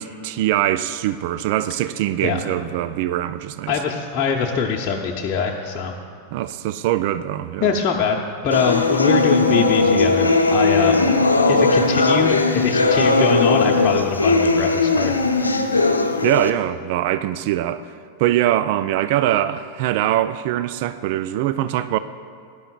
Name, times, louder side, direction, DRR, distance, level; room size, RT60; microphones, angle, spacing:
voice 1, 0.0-3.8 6.3-7.7 16.2-17.8 18.2-22.0, right 13 dB, 50° right, 0.3 m, -22 dB
voice 2, 3.7-5.9 7.6-8.2 8.4-11.1 11.5-15.1, left 6 dB, 35° left, 0.8 m, -23 dB
sound 1, 8.5-16.5, left 3 dB, 80° left, 0.7 m, -18 dB
18.5 x 10.5 x 2.4 m
figure-of-eight pair, 90°, 0 cm